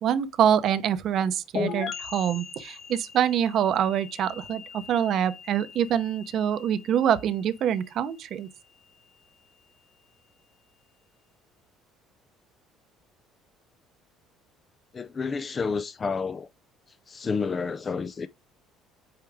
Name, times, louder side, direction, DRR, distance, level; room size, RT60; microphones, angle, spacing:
voice 1, 0.0-8.5, right 9 dB, 50° right, 0.8 m, -25 dB
sound 1, 1.5-9.1, left 6 dB, 40° left, 1.2 m, -39 dB
voice 2, 14.9-16.5 16.9-18.3, left 5 dB, 25° left, 0.4 m, -30 dB
8.7 x 4.5 x 3.5 m
cardioid pair, 140°, 0 cm